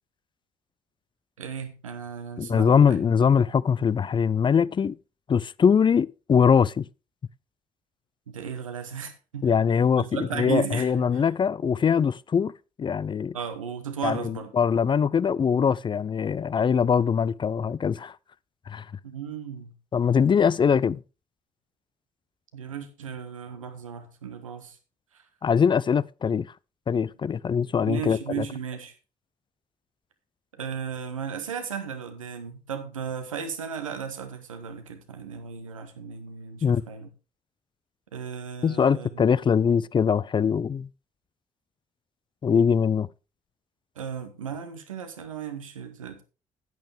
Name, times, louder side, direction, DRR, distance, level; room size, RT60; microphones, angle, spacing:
voice 1, 1.4-3.0 8.3-9.5 10.0-11.2 13.3-14.5 19.0-19.7 22.5-24.8 27.9-28.9 30.5-37.1 38.1-39.3 44.0-46.2, right 7 dB, 90° right, 1.0 m, -35 dB
voice 2, 2.4-5.0 5.3-6.9 9.4-12.5 12.8-13.3 14.0-18.1 18.7-18.8 19.9-21.0 25.4-26.5 26.9-28.4 36.6-36.8 38.6-40.9 42.4-43.1, left 7 dB, 30° left, 0.4 m, -22 dB
10.5 x 9.0 x 3.3 m
hypercardioid pair, 45°, 17 cm